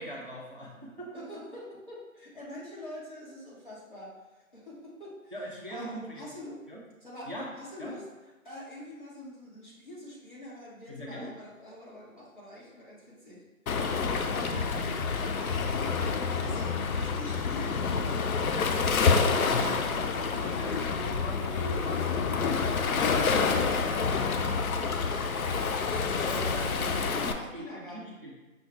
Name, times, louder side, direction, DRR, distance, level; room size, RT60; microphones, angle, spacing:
voice 1, 0.0-1.4 5.3-6.2 6.7-6.8 7.3-7.5 7.8-7.9 10.9-11.3 14.0-14.4 19.4-24.1 26.2-28.3, equal, 45° right, -2 dB, 0.4 m, -42 dB
voice 2, 1.1-5.3 5.7-6.6 7.0-8.0 8.4-14.6 15.4-15.9 16.3-18.3 25.0-28.1, left 1 dB, 35° left, -8 dB, 1.1 m, -45 dB
Waves surf, 13.7-27.3, left 5 dB, 90° left, 0.5 m, -28 dB
5.5 x 2.2 x 3.0 m, 1.1 s
figure-of-eight pair, 180°, 41 cm